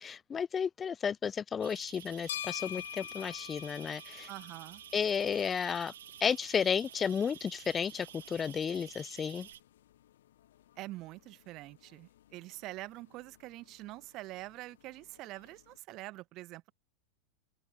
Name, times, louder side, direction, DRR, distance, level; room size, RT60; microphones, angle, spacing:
voice 1, 0.0-4.3 4.9-5.9 6.2-9.5, left 7 dB, 20° left, 0.6 m, -33 dB
sound 1, 1.6-9.6, right 11 dB, 60° right, 1.9 m, -51 dB
sound 2, 1.9-15.8, left 12 dB, 60° left, 1.0 m, -49 dB
voice 2, 4.3-4.8 10.8-16.7, right 18 dB, 40° right, 1.4 m, -45 dB
figure-of-eight pair, 90°, 0 cm